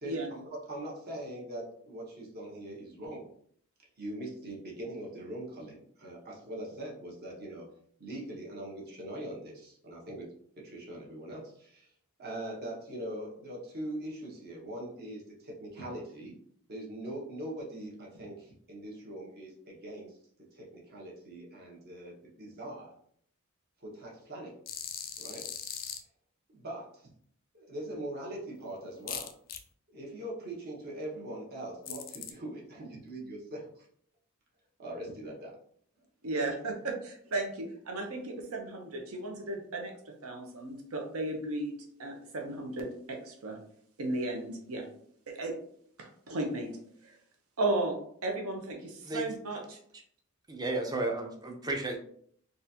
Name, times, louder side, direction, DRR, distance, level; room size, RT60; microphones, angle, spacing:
voice 1, 0.0-3.2 4.0-7.7 8.0-11.9 12.2-16.3 16.7-20.2 20.5-22.9 23.8-24.6 25.2-25.5 26.5-27.1 27.5-29.3 29.9-33.9 34.8-35.6, right 1 dB, 45° right, -3 dB, 1.0 m, -42 dB
sound 1, 24.7-26.0 29.1-29.6 31.9-32.3, left 9 dB, 40° left, 0.4 m, -39 dB
voice 2, 36.2-39.9 40.2-43.6 44.0-44.9 45.3-45.5 46.0-47.2 47.6-49.8, right 2 dB, 70° right, 3 dB, 0.8 m, -35 dB
voice 3, 50.5-52.0, right 2 dB, 20° right, 2 dB, 0.5 m, -33 dB
3.9 x 2.4 x 2.8 m, 0.62 s
head